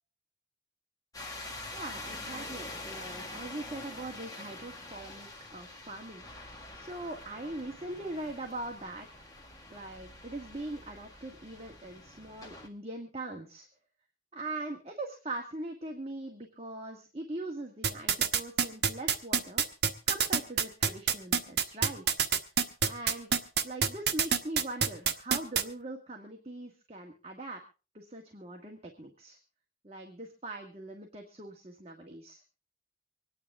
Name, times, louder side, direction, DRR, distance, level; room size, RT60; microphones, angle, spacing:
sound 1, 1.1-12.7, left 2 dB, 20° left, 1.7 m, -45 dB
voice 1, 1.7-6.2 6.5-9.3 9.7-13.7 14.3-19.7 20.1-22.4 22.8-23.3 23.6-27.6 27.9-29.4 29.8-32.4, right 2 dB, 35° right, 2 dB, 1.6 m, -41 dB
sound 2, 17.8-25.6, right 7 dB, 65° right, 1.2 m, -26 dB
25.0 x 10.0 x 3.6 m, 0.33 s
head